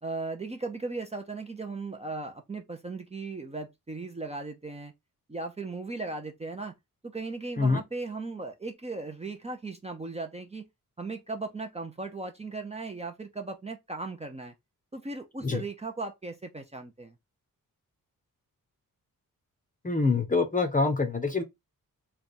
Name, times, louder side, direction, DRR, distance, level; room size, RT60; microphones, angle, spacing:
voice 1, 0.0-4.9 5.3-6.7 7.1-10.6 11.0-14.5 14.9-17.1, right 3 dB, 20° right, 0.6 m, -37 dB
voice 2, 19.8-21.4, left 4 dB, 25° left, 0.7 m, -25 dB
3.3 x 2.3 x 4.0 m
wide cardioid pair, 100°, 34 cm